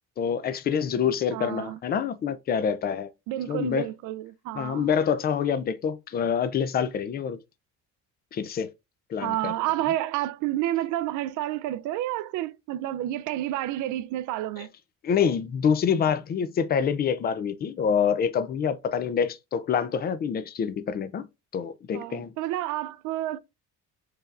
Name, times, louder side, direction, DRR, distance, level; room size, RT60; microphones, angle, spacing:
voice 1, 0.2-3.1 3.5-3.9 4.5-7.4 8.3-8.7 9.1-9.5 15.0-21.3 21.5-22.3, left 7 dB, 30° left, 0.4 m, -26 dB
voice 2, 1.3-1.8 3.3-4.9 9.2-14.7 21.9-23.4, right 14 dB, 75° right, 0.4 m, -30 dB
4.7 x 3.3 x 2.4 m
cardioid pair, 150°, 31 cm